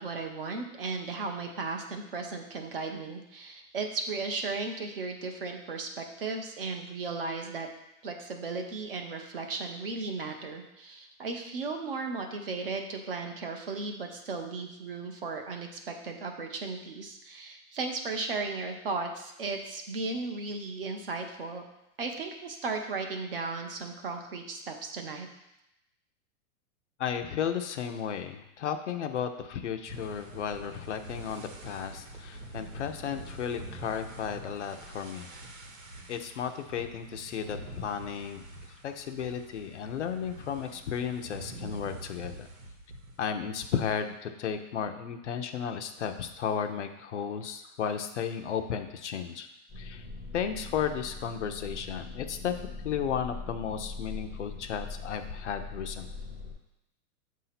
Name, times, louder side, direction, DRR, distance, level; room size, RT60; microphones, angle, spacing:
voice 1, 0.0-7.7 8.0-21.6 22.0-25.3, right 3 dB, 40° right, 4 dB, 0.6 m, -35 dB
voice 2, 27.0-35.3 36.1-38.4 38.8-42.5 43.2-49.5 49.8-50.0 50.3-52.5 52.8-56.1, left 8 dB, 55° left, 7 dB, 0.5 m, -34 dB
sound 1, 29.9-43.3, right 1 dB, 65° right, 1.1 m, -45 dB
sound 2, 49.7-56.5, left 3 dB, ahead, 0.7 m, -41 dB
7.3 x 2.8 x 5.7 m, 0.87 s
supercardioid pair, 180°, 44 cm